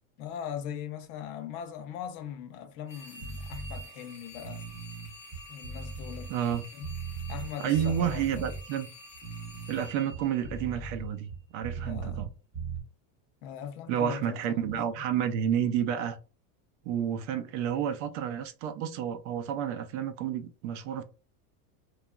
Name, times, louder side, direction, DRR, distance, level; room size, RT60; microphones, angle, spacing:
voice 1, 0.2-4.7 5.5-6.4 6.7-7.0 7.3-8.5 11.7-12.3 13.4-14.8, left 9 dB, 75° left, 0.7 m, -40 dB
sound 1, 2.9-11.1, equal, 15° left, 0.4 m, -49 dB
sound 2, 3.2-3.8 4.3-7.5 7.7-8.6 9.1-12.3 12.5-12.8, right 4 dB, 10° right, 0.7 m, -38 dB
voice 2, 6.3-6.6 7.6-8.9 9.7-12.3 13.9-16.2 16.9-21.0, right 9 dB, 55° right, 0.5 m, -30 dB
2.9 x 2.3 x 2.2 m
supercardioid pair, 170°, 44 cm